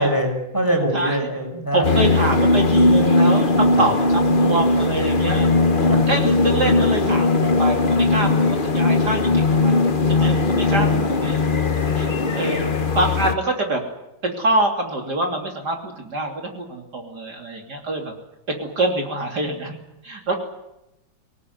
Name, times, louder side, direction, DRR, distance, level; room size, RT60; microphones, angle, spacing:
voice 1, 0.0-2.0 3.8-3.9 5.9-6.0, right 1 dB, 10° left, 3 dB, 5.5 m, -23 dB
voice 2, 0.9-1.3 1.7-5.5 5.8-11.4 12.0-12.1 12.3-13.8 14.2-18.1 18.6-19.8 20.0-20.3, right 2 dB, 55° right, 3 dB, 3.5 m, -25 dB
sound 1, 1.8-13.3, left 3 dB, 30° left, 1.3 m, -18 dB
25.5 x 19.0 x 9.5 m, 0.89 s
omnidirectional pair, 2.1 m